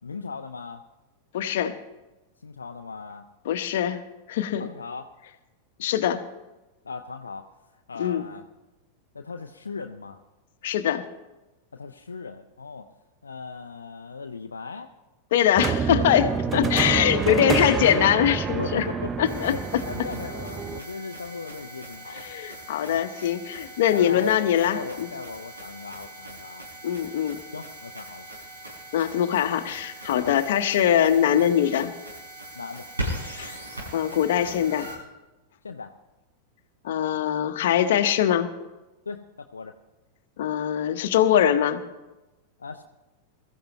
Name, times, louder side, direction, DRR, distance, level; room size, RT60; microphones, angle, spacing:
voice 1, 0.0-0.8 2.4-3.3 4.6-5.1 6.8-7.5 7.9-8.4 9.1-10.2 11.7-12.9 13.2-14.9 16.5-17.8 18.6-19.4 19.8-22.3 22.9-23.1 23.9-24.4 24.7-26.7 27.5-28.3 30.2-30.4 32.5-32.8 35.6-35.9 39.1-39.8 42.6-42.8, left 4 dB, 80° left, 4 dB, 0.6 m, -37 dB
voice 2, 1.3-1.7 3.4-4.0 4.3-4.7 5.8-6.2 8.0-8.3 10.6-11.0 15.3-18.9 19.2-19.8 22.1-25.1 26.8-27.4 28.9-31.9 33.3-33.6 33.9-34.9 36.8-38.5 40.4-41.8, left 10 dB, 60° left, 9 dB, 1.0 m, -23 dB
sound 1, 15.6-20.8, right 6 dB, 25° right, 0.6 m, -28 dB
sound 2, 19.2-35.0, right 1 dB, 85° right, 6.5 m, -40 dB
22.0 x 14.0 x 3.1 m, 1.0 s
figure-of-eight pair, 90°, 0 cm